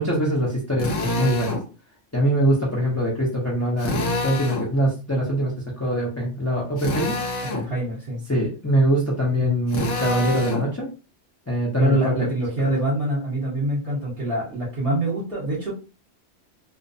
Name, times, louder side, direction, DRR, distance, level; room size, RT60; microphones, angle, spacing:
voice 1, 0.0-1.6 2.1-5.5 5.8-7.6 8.3-10.9 11.5-12.1, right 1 dB, 20° left, -4 dB, 0.4 m, -23 dB
Drill, 0.8-1.6 3.8-4.7 6.8-7.7 9.7-10.7, left 2 dB, 80° left, 1.0 m, -27 dB
voice 2, 7.5-8.2 9.4-9.5 11.8-15.7, right 1 dB, 50° right, -8 dB, 1.0 m, -25 dB
2.5 x 2.1 x 2.5 m, 0.33 s
omnidirectional pair, 1.3 m